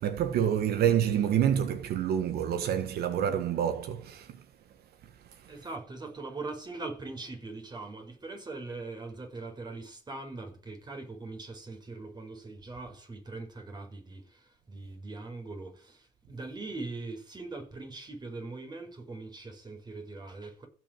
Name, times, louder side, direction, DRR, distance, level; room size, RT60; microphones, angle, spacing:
voice 1, 0.0-4.4 5.2-5.5, right 9 dB, 65° right, 1.4 m, -28 dB
voice 2, 5.5-20.7, right 3 dB, 25° right, 5.1 m, -41 dB
15.5 x 6.4 x 9.1 m
cardioid pair, 110°, 17 cm